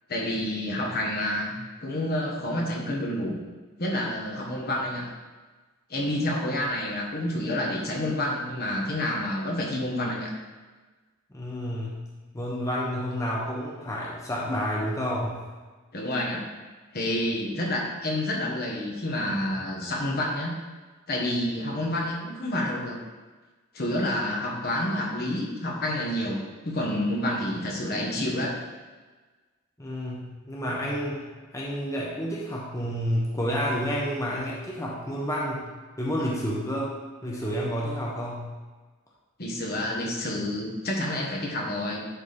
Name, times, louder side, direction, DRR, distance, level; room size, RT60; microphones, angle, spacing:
voice 1, 0.1-3.4 3.8-5.1 5.9-10.3 15.9-16.5 16.9-20.6 21.1-23.0 23.7-28.6 39.4-42.0, left 1 dB, 50° left, -1 dB, 1.3 m, -29 dB
voice 2, 11.3-12.0 12.3-15.4 29.8-31.2 31.5-35.7 36.0-36.9 37.2-38.5, equal, 15° left, -5 dB, 1.1 m, -30 dB
11.0 x 4.1 x 3.5 m, 1.3 s
head